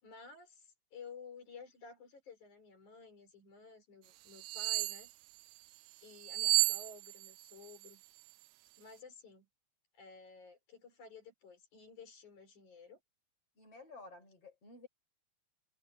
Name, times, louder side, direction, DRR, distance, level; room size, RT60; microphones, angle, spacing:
voice 1, 0.0-5.1 6.0-8.0 8.8-9.5 9.9-13.0, left 5 dB, 80° left, 6.6 m, -54 dB
sound 1, 4.4-5.1 6.2-7.4 7.7-7.9, right 17 dB, 80° right, 2.0 m, -31 dB
voice 2, 13.6-14.9, left 3 dB, 50° left, 6.7 m, -53 dB
omnidirectional pair, 3.4 m